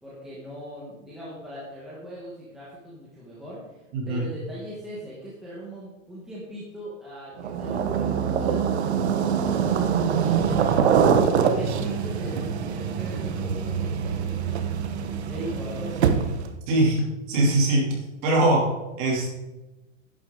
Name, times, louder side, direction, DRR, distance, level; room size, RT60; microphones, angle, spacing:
voice 1, 0.0-10.7 11.3-14.7 15.0-16.2, equal, ahead, -8 dB, 1.3 m, -40 dB
sound 1, 7.4-16.5, right 7 dB, 55° right, 1.1 m, -24 dB
sound 2, 7.7-15.9, right 2 dB, 85° left, 1.9 m, -39 dB
voice 2, 16.7-17.0 17.3-17.9 18.2-19.3, right 1 dB, 30° right, -2 dB, 2.9 m, -22 dB
11.0 x 10.5 x 3.8 m, 1.0 s
supercardioid pair, 175°, 39 cm